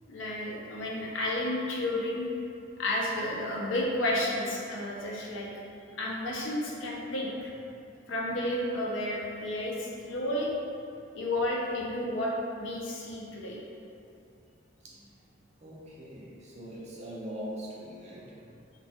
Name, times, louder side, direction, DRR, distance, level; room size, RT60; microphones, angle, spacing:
voice 1, 0.1-2.3 2.8-5.5 6.0-7.5 8.1-10.5 11.1-12.3 12.6-13.6, left 1 dB, 90° left, -3 dB, 0.5 m, -31 dB
voice 2, 14.8-15.2 15.6-18.7, equal, 35° right, -6 dB, 0.5 m, -42 dB
3.2 x 2.2 x 2.8 m, 2.6 s
head